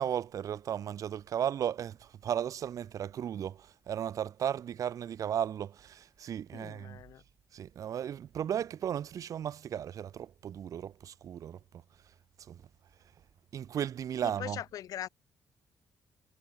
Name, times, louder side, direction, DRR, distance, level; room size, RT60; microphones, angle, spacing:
voice 1, 0.0-7.0 7.5-11.6 12.4-12.6 13.5-14.6, right 9 dB, 65° right, 3.9 m, -35 dB
voice 2, 6.5-7.2 14.2-15.1, left 11 dB, 75° left, 2.3 m, -41 dB
cardioid pair, 90°, 6 cm